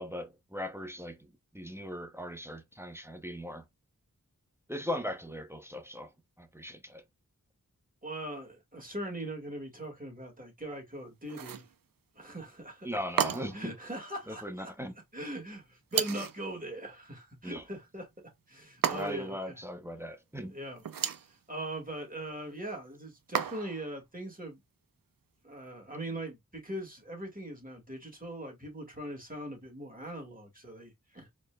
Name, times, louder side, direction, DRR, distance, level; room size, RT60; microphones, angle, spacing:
voice 1, 0.0-3.6 4.7-6.1 6.4-7.0 12.8-13.7 14.3-14.9 17.4-17.6 18.9-20.5, equal, 5° right, 0.7 m, -39 dB
voice 2, 8.0-11.6 12.1-12.9 13.2-14.7 15.1-18.1 18.5-19.6 20.5-20.8 21.3-24.6 25.4-31.3, right 1 dB, 25° right, 1.9 m, -41 dB
sound 1, 11.3-11.7 13.2-13.7 15.9-16.4 18.8-19.4 20.8-21.3 23.3-23.9, right 8 dB, 75° right, 0.5 m, -32 dB
4.3 x 3.3 x 2.2 m
wide cardioid pair, 55°, 34 cm